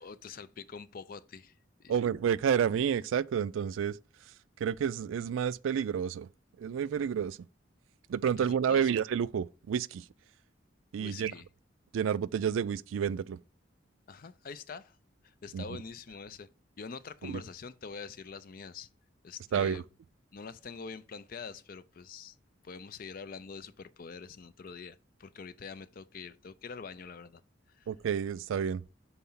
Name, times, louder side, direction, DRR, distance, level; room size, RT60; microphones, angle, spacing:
voice 1, 0.0-1.5 1.8-2.0 8.4-8.9 11.0-11.4 14.1-15.0 15.2-16.5 16.8-18.9 19.2-19.8 20.3-22.4 22.6-27.4 27.8-27.9, left 5 dB, 45° left, 0.4 m, -45 dB
voice 2, 1.9-4.0 4.6-6.3 6.6-7.4 8.1-10.0 10.9-11.3 11.9-13.4 15.5-15.8 17.2-17.4 19.5-19.8 27.9-28.8, right 8 dB, 80° right, 0.3 m, -30 dB
5.7 x 4.2 x 5.5 m
head